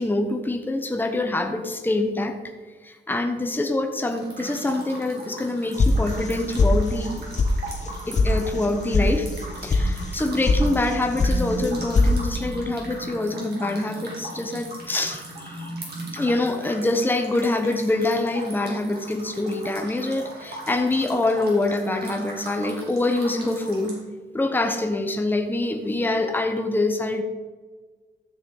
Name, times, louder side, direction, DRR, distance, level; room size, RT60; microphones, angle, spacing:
voice 1, 0.0-2.4 2.8-7.2 7.8-9.3 9.6-15.7 16.1-24.0 24.3-27.2, left 2 dB, 10° left, 5 dB, 1.0 m, -25 dB
sound 1, 4.1-24.0, right 2 dB, 65° right, 3.8 m, -38 dB
sound 2, 5.8-6.3 6.6-7.1 7.4-7.5 7.8-8.3 8.6-9.1 9.3-9.8 10.1-10.6 10.9-11.4 11.6-12.1, left 4 dB, 40° left, 1.1 m, -20 dB
13.0 x 6.7 x 5.5 m, 1.4 s
cardioid pair, 110°, 18 cm